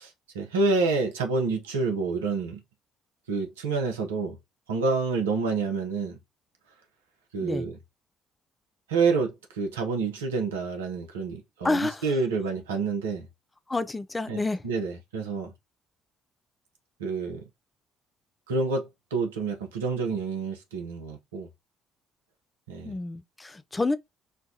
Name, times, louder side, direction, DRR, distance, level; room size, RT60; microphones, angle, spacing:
voice 1, 0.0-2.6 3.3-4.4 4.7-6.2 7.3-7.7 8.9-13.3 14.3-15.5 17.0-17.4 18.5-21.5 22.7-23.0, right 4 dB, 75° right, 0.7 m, -28 dB
voice 2, 11.6-12.1 13.7-14.6 22.8-24.0, left 2 dB, 20° left, 0.4 m, -29 dB
4.3 x 2.3 x 2.7 m
figure-of-eight pair, 45°, 0 cm